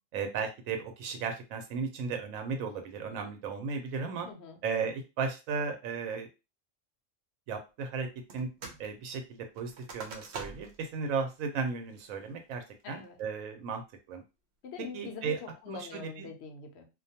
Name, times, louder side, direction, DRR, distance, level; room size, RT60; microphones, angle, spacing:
voice 1, 0.1-4.3 4.6-6.3 7.5-8.1 8.3-8.5 8.8-13.8 14.1-14.2 14.9-15.4 15.7-16.3, right 5 dB, 90° right, 5 dB, 1.0 m, -35 dB
voice 2, 4.2-4.6 12.8-13.2 14.6-16.9, left 5 dB, 60° left, 4 dB, 0.8 m, -44 dB
sound 1, 8.3-8.9 9.1-10.8 11.3-11.4 11.9-12.3 12.8-13.2, right 4 dB, 65° right, 0.8 m, -45 dB
2.5 x 2.2 x 2.7 m, 0.27 s
omnidirectional pair, 1.4 m